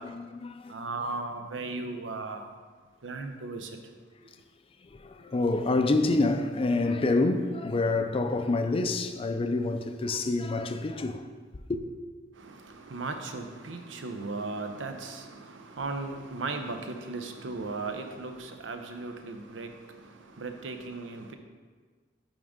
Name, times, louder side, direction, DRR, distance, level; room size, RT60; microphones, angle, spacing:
voice 1, 0.0-1.2 4.8-11.3 11.7-11.8, left 2 dB, 30° left, 0.4 m, -27 dB
voice 2, 0.7-2.5 3.0-3.7 12.4-19.7 20.4-21.4, right 3 dB, 85° right, 0.6 m, -36 dB
10.0 x 3.6 x 3.6 m
head